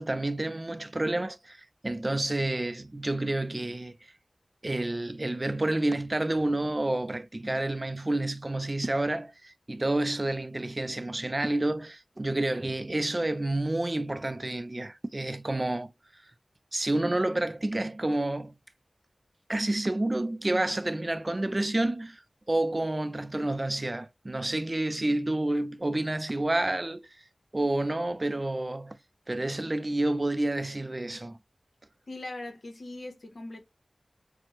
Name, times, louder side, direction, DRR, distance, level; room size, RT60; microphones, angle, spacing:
voice 1, 0.0-4.0 4.6-15.9 16.7-18.5 19.5-22.2 22.5-27.1 27.5-29.0 29.3-31.4, right 1 dB, 35° right, 0.3 m, -29 dB
voice 2, 32.1-33.6, left 2 dB, 75° left, 0.8 m, -40 dB
4.2 x 2.0 x 2.9 m
wide cardioid pair, 55°, 0 cm